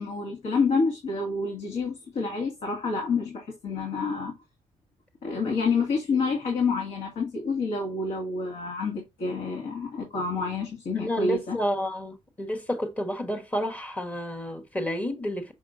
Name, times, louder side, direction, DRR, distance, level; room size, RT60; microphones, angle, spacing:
voice 1, 0.0-4.3 5.2-11.6, left 4 dB, 80° left, 2.3 m, -28 dB
voice 2, 11.0-15.5, equal, 10° left, 1.3 m, -30 dB
6.3 x 6.2 x 2.6 m
wide cardioid pair, 165°, 12 cm